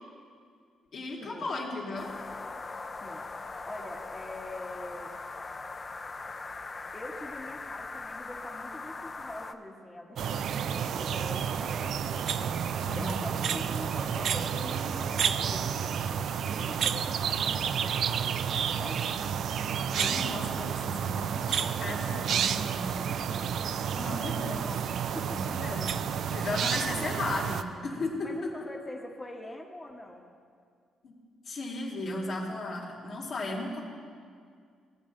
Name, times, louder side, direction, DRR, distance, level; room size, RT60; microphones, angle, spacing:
voice 1, 0.9-2.1 12.8-13.2 19.9-23.5 24.0-24.7 25.2-25.9 26.3-28.5 31.0-31.1 31.5-33.8, left 2 dB, 65° left, -5 dB, 2.2 m, -35 dB
sound 1, 2.0-9.5, left 3 dB, 30° left, 0.5 m, -40 dB
voice 2, 3.6-5.2 6.9-12.5 12.9-19.0 23.9-25.6 26.7-27.2 28.2-30.3, left 1 dB, 15° left, 0 dB, 1.0 m, -44 dB
sound 2, 10.2-27.6, right 8 dB, 70° right, 0.3 m, -30 dB
sound 3, 10.9-16.8, left 1 dB, 15° right, 0.8 m, -56 dB
17.0 x 8.5 x 2.5 m, 2.2 s
cardioid pair, 90°, 0 cm